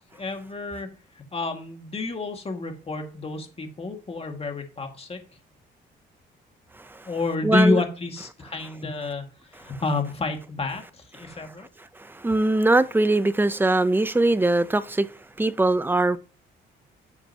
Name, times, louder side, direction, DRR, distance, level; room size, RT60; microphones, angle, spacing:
voice 1, 0.1-0.9 1.2-5.2 7.1-11.7, left 3 dB, 30° left, 2.1 m, -29 dB
voice 2, 7.4-7.8 12.0-15.1 15.4-16.2, right 2 dB, 10° right, 0.6 m, -21 dB
10.0 x 7.2 x 2.9 m
cardioid pair, 90°, 20 cm